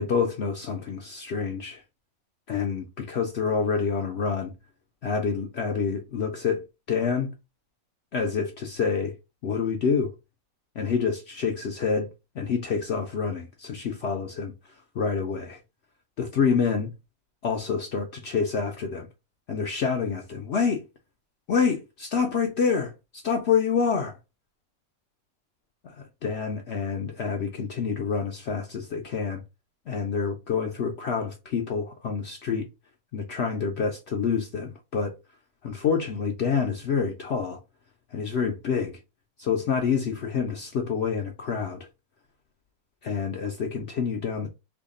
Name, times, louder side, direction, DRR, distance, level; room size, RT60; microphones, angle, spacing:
voice 1, 0.0-1.8 2.5-4.5 5.0-7.3 8.1-9.1 9.4-10.1 10.8-12.1 12.4-14.5 14.9-15.6 16.2-16.9 17.4-19.1 19.5-20.8 21.5-24.2 25.8-29.4 29.9-32.7 33.1-35.1 35.6-37.6 38.1-39.0 39.4-41.9 43.0-44.5, left 6 dB, 60° left, 0.7 m, -27 dB
3.5 x 2.3 x 3.6 m
omnidirectional pair, 1.5 m